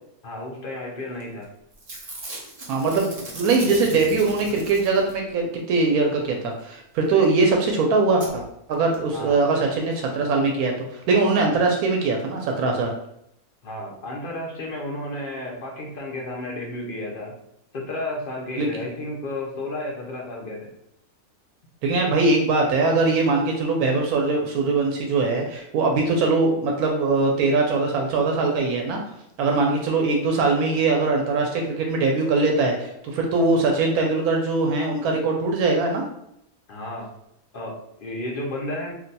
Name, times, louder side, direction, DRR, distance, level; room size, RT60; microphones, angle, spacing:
voice 1, 0.2-1.5 9.1-9.4 13.6-17.3 17.7-20.7 36.7-37.1 37.5-38.9, left 1 dB, 55° left, -2 dB, 0.6 m, -32 dB
Packing tape duct tape / Tearing, 1.2-1.4 1.7-5.3 7.2-7.3 7.5-7.6 8.2-8.3 8.9-9.0 9.2-9.3, right 2 dB, 45° right, 0.4 m, -39 dB
voice 2, 2.7-8.4 8.7-12.9 18.6-18.7 21.8-29.0 29.4-36.0, right 3 dB, 85° right, 1 dB, 1.1 m, -21 dB
2.6 x 2.2 x 3.9 m, 0.77 s
omnidirectional pair, 1.5 m